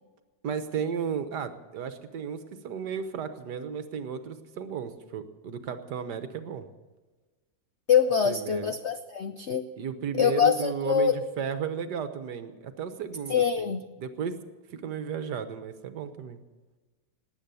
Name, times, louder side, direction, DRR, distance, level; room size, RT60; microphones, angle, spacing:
voice 1, 0.4-6.7 8.2-8.7 9.8-13.7 14.0-14.4 14.7-16.4, right 7 dB, 70° right, 10 dB, 1.6 m, -34 dB
voice 2, 7.9-9.7 10.1-11.2 13.3-13.8, left 7 dB, 70° left, 10 dB, 0.6 m, -24 dB
19.5 x 8.6 x 6.9 m, 1.3 s
omnidirectional pair, 1.9 m